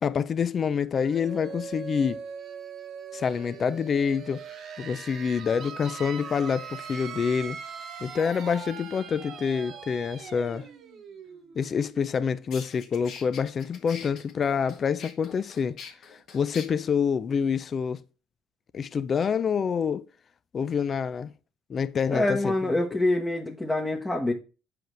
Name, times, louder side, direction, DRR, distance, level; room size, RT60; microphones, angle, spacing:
voice 1, 0.0-2.2 3.1-4.4 4.8-7.6 8.0-10.7 11.5-15.8 16.3-18.0 18.7-20.1 20.5-21.3 21.7-22.5, left 6 dB, 40° left, 0.5 m, -27 dB
sound 1, 1.0-12.5, right 6 dB, 55° right, 1.1 m, -41 dB
sound 2, 12.1-12.2 12.5-16.7, left 6 dB, 60° left, 1.6 m, -44 dB
voice 2, 22.1-24.3, left 2 dB, 15° left, 1.2 m, -26 dB
7.6 x 4.9 x 3.2 m
supercardioid pair, 80°, 0 cm